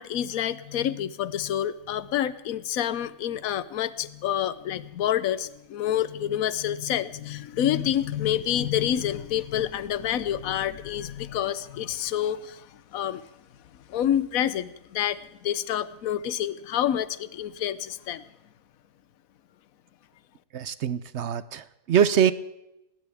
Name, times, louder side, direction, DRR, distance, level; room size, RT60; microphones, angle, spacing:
voice 1, 0.0-13.2 13.9-18.2, left 10 dB, 80° left, 16 dB, 1.2 m, -28 dB
voice 2, 20.5-22.3, right 8 dB, 60° right, 15 dB, 0.9 m, -23 dB
19.5 x 18.0 x 3.5 m, 0.91 s
omnidirectional pair, 1.5 m